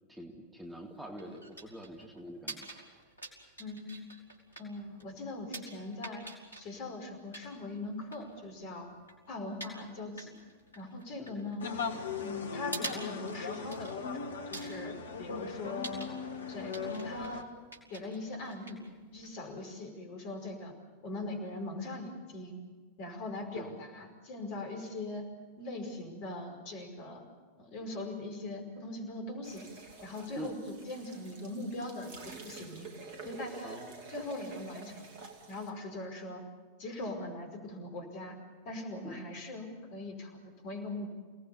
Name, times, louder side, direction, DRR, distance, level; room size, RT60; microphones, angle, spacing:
voice 1, 0.1-2.7 11.2-11.4 23.5-23.7 30.3-30.5 33.6-33.9 39.0-39.2, right 1 dB, 5° right, 1 dB, 2.4 m, -45 dB
sound 1, 0.6-19.7, right 2 dB, 85° left, 4.1 m, -48 dB
voice 2, 3.6-4.1 4.6-6.2 6.6-8.9 9.3-10.3 10.8-11.7 12.2-14.0 14.5-16.1 16.5-17.5 17.9-18.8 19.1-20.8 21.0-22.5 23.0-25.3 25.6-27.3 27.6-29.6 30.0-32.2 32.4-32.9 33.2-33.8 34.1-35.1 35.5-36.4 36.8-38.4 38.7-41.1, left 2 dB, 45° left, 4 dB, 5.2 m, -41 dB
sound 2, 11.6-17.4, left 5 dB, 65° left, 1.6 m, -38 dB
sound 3, 29.4-35.7, right 4 dB, 50° right, 3.0 m, -48 dB
29.0 x 18.5 x 7.1 m, 1.5 s
figure-of-eight pair, 90°, 0 cm